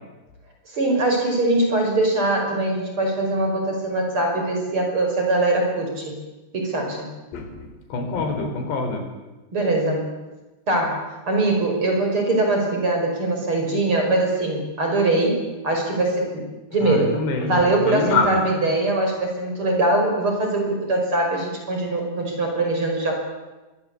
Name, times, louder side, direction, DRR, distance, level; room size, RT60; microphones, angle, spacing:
voice 1, 0.7-6.2 6.5-7.1 9.5-10.1 10.7-16.5 16.7-17.1 17.4-23.2, right 2 dB, 30° right, 2 dB, 6.1 m, -22 dB
voice 2, 7.3-9.0 16.8-18.4, left 3 dB, 70° left, 5 dB, 5.9 m, -26 dB
25.5 x 23.0 x 8.5 m, 1.1 s
omnidirectional pair, 5.0 m